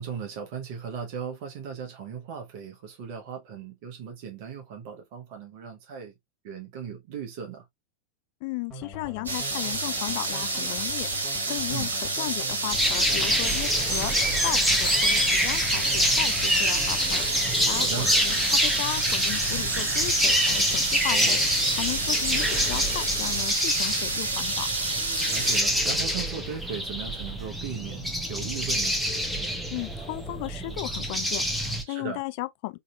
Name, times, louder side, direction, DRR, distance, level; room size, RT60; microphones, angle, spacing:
voice 1, 0.0-6.1 6.4-7.6 11.7-11.9 17.7-18.1 21.1-21.4 25.3-29.0 31.9-32.2, right 7 dB, 45° right, 1.1 m, -37 dB
voice 2, 8.4-14.1 14.4-17.3 17.7-21.4 21.7-24.7 29.7-32.8, left 20 dB, 45° left, 0.4 m, -35 dB
sound 1, 8.7-23.5, left 3 dB, 15° left, 1.7 m, -42 dB
sound 2, 9.3-25.6, right 3 dB, 75° right, 1.1 m, -29 dB
sound 3, 12.7-31.8, equal, ahead, 0.9 m, -26 dB
3.9 x 2.9 x 2.3 m
figure-of-eight pair, 90°, 0 cm